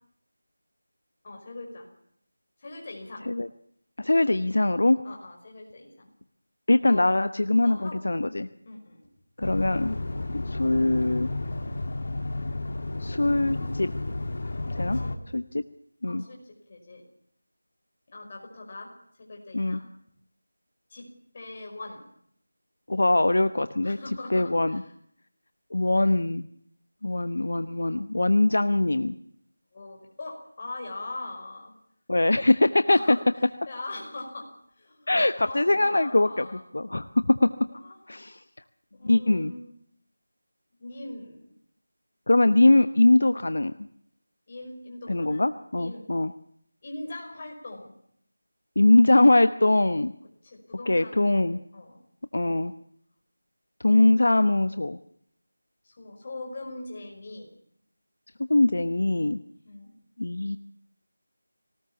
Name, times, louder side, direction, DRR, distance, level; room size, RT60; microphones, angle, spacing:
voice 1, 1.2-1.9 2.6-3.3 5.0-6.1 6.8-7.0 7.6-8.1 8.6-9.1 14.9-15.1 16.1-17.0 18.1-18.9 19.2-19.9 20.9-21.1 21.3-22.0 23.8-24.9 29.7-31.7 32.8-33.2 33.7-36.6 37.7-38.0 38.9-39.7 40.8-41.4 44.5-45.5 45.8-46.1 46.8-47.9 50.4-52.0 55.8-57.5 59.7-59.9, left 2 dB, 25° left, 1 dB, 5.4 m, -41 dB
voice 2, 4.0-5.0 6.7-8.5 9.4-9.9 10.3-11.3 13.0-13.9 14.7-15.0 15.3-15.6 16.0-16.2 19.5-19.8 22.9-24.0 24.3-24.8 25.7-26.5 27.0-29.2 32.1-33.2 35.1-36.4 36.7-37.5 38.1-38.4 39.0-39.5 42.3-43.9 45.1-46.3 48.8-50.1 50.9-51.6 52.3-52.7 53.8-55.0 58.5-59.4 60.2-60.6, left 2 dB, 60° left, 12 dB, 1.0 m, -22 dB
sound 1, 9.4-15.2, left 2 dB, 45° left, 2.3 m, -32 dB
21.0 x 19.0 x 7.1 m, 0.68 s
figure-of-eight pair, 175°, 0 cm